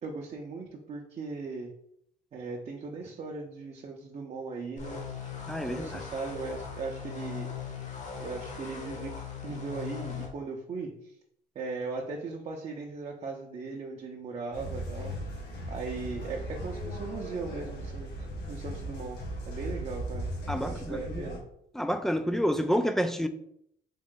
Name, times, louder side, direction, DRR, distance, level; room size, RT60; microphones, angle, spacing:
voice 1, 0.0-1.7 2.3-5.0 5.7-7.5 8.2-11.1 11.5-15.2 15.7-19.2 19.5-20.3 20.6-21.4, right 4 dB, 40° right, 0.6 m, -38 dB
sound 1, 4.8-10.3, left 6 dB, 45° left, 1.0 m, -39 dB
voice 2, 5.5-6.0 20.5-21.3 21.7-23.3, equal, ahead, 0.3 m, -29 dB
sound 2, 14.5-21.4, equal, 85° left, 1.2 m, -37 dB
3.7 x 3.2 x 3.7 m
cardioid pair, 110°, 17 cm